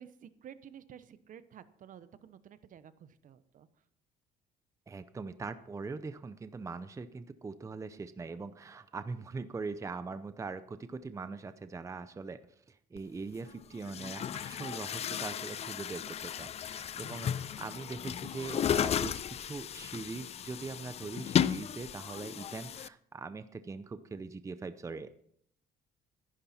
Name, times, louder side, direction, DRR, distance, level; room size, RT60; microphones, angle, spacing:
voice 1, 0.0-3.7, right 9 dB, 50° right, 14 dB, 0.9 m, -52 dB
voice 2, 4.9-12.4 12.7-25.2, right 4 dB, 20° right, 12 dB, 0.6 m, -42 dB
Chatter / Gurgling / Tap, 13.0-13.1 13.8-22.9, left 9 dB, 40° left, 0.4 m, -34 dB
14.5 x 11.0 x 4.3 m, 0.66 s
cardioid pair, 110°, 17 cm